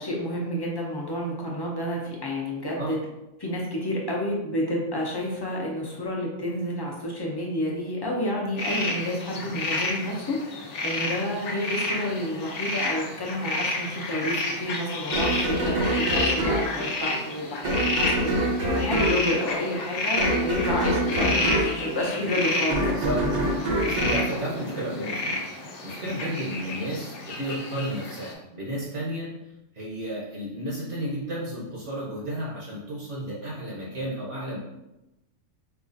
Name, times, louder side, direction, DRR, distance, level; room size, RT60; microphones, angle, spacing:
voice 1, 0.0-3.0 3.4-10.4 10.8-22.8, left 1 dB, 35° left, -3 dB, 0.3 m, -30 dB
sound 1, 8.6-28.3, left 2 dB, 70° left, 1.0 m, -30 dB
sound 2, 15.1-25.3, right 1 dB, 50° right, 0.6 m, -26 dB
voice 2, 22.8-23.3 23.8-25.4 25.8-29.3 29.7-34.6, right 1 dB, 65° right, -5 dB, 1.2 m, -32 dB
4.7 x 2.3 x 2.6 m, 0.93 s
omnidirectional pair, 1.3 m